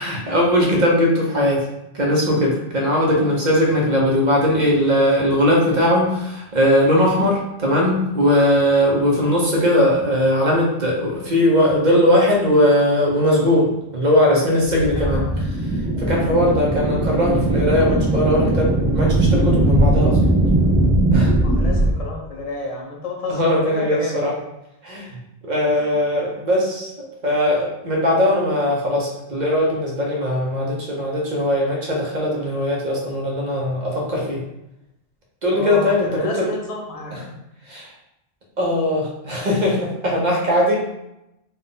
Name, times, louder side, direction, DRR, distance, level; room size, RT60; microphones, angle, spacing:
voice 1, 0.0-1.7 1.9-15.3 16.0-20.2 20.5-20.6 21.1-21.3 23.3-24.3 24.8-25.1 25.4-34.4 35.4-36.5 37.1-37.2 37.7-37.9 38.6-40.8, left 1 dB, 45° right, -2 dB, 1.0 m, -19 dB
sound 1, 14.6-21.9, right 1 dB, 5° right, 0.4 m, -19 dB
voice 2, 14.9-15.3 21.4-24.3 25.7-26.0 35.5-37.1, left 2 dB, 35° left, -1 dB, 0.8 m, -31 dB
4.1 x 2.6 x 3.8 m, 0.87 s
omnidirectional pair, 1.1 m